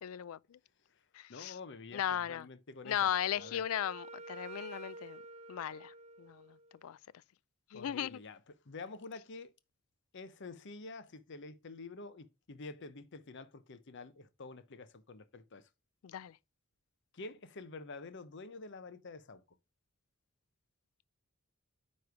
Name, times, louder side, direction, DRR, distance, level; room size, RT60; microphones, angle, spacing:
voice 1, 0.0-0.6 1.1-1.6 1.9-2.4 2.8-5.2 5.5-6.5 6.8-7.0 7.7-8.2 16.0-16.4, left 10 dB, 85° left, 0.4 m, -37 dB
voice 2, 1.3-3.6 7.7-8.4 8.6-9.5 10.1-15.7 17.1-19.4, left 3 dB, 60° left, 0.8 m, -48 dB
Wind instrument woodwind instrument, 2.9-6.8, right 3 dB, 30° right, 0.5 m, -50 dB
9.4 x 3.3 x 4.6 m
head